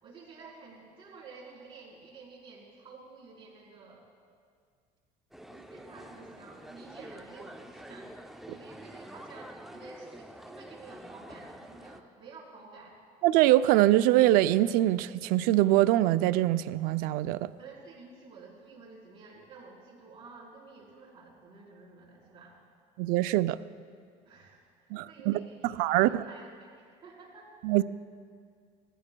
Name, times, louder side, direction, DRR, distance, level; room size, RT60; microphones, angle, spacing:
voice 1, 0.0-4.0 5.5-8.2 8.5-13.0 17.6-22.6 24.2-27.5, right 4 dB, 35° right, -5 dB, 3.9 m, -51 dB
sound 1, 5.3-12.0, right 1 dB, ahead, 0.5 m, -47 dB
voice 2, 13.2-17.5 23.0-23.6 24.9-25.4 25.8-26.2 27.6-27.8, right 15 dB, 75° right, 14 dB, 0.4 m, -23 dB
20.0 x 14.5 x 2.2 m, 2.1 s
cardioid pair, 125°, 15 cm